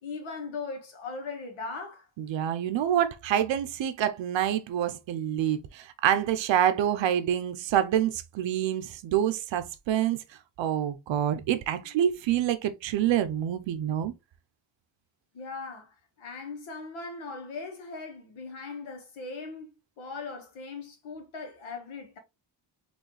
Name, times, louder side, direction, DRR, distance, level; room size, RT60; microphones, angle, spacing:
voice 1, 0.0-2.1 15.3-19.7 20.0-22.2, left 4 dB, 90° left, 1.7 m, -39 dB
voice 2, 2.2-10.2 10.6-14.1, right 10 dB, 75° right, 0.8 m, -27 dB
4.4 x 3.2 x 3.1 m
wide cardioid pair, 180°, 46 cm